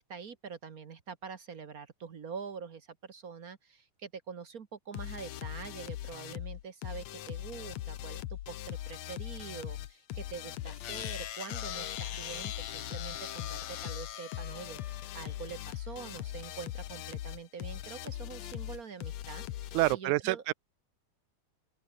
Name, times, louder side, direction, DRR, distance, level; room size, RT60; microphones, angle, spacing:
voice 1, 0.0-20.4, right 6 dB, 55° right, 0.9 m, -45 dB
sound 1, 4.9-20.0, left 13 dB, 70° left, 2.1 m, -41 dB
sound 2, 10.7-16.0, left 11 dB, 90° left, 3.1 m, -42 dB
voice 2, 19.7-20.5, right 19 dB, 80° right, 2.1 m, -27 dB
open air
omnidirectional pair, 3.4 m